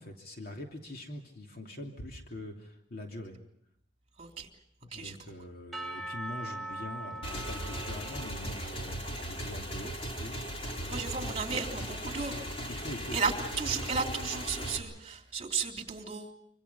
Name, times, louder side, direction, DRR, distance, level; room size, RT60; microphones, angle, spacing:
voice 1, 0.0-3.4 4.8-10.4 10.7-11.9 12.7-13.2, left 1 dB, 55° left, 2 dB, 2.9 m, -44 dB
voice 2, 4.2-4.5 4.9-5.2 10.9-12.3 13.1-13.3 13.6-16.3, right 5 dB, 35° right, 3 dB, 3.5 m, -34 dB
Percussion / Church bell, 5.7-9.7, right 1 dB, ahead, 1.7 m, -42 dB
Motorcycle / Engine, 7.2-14.8, equal, 30° left, 3.8 m, -37 dB
26.0 x 26.0 x 5.7 m, 0.75 s
head